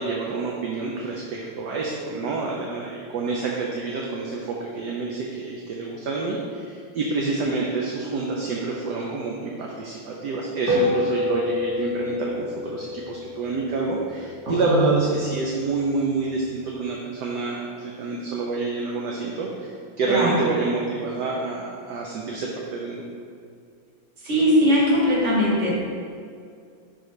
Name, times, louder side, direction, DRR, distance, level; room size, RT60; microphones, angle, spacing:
voice 1, 0.0-23.0, right 3 dB, 65° right, -2 dB, 1.2 m, -28 dB
sound 1, 10.7-15.3, left 2 dB, 10° right, 1.3 m, -28 dB
voice 2, 14.4-14.9 20.1-20.5 24.2-25.7, equal, 40° right, -5 dB, 1.6 m, -20 dB
11.0 x 4.0 x 3.3 m, 2.3 s
omnidirectional pair, 2.1 m